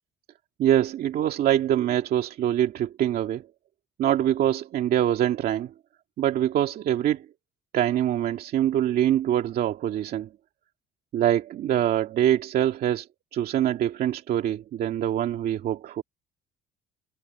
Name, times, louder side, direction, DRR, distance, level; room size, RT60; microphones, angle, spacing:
voice 1, 0.6-3.5 4.0-5.7 6.2-7.3 7.7-10.3 11.1-13.1 13.3-16.0, right 11 dB, 65° right, 2.2 m, -24 dB
cardioid pair, 110°, 17 cm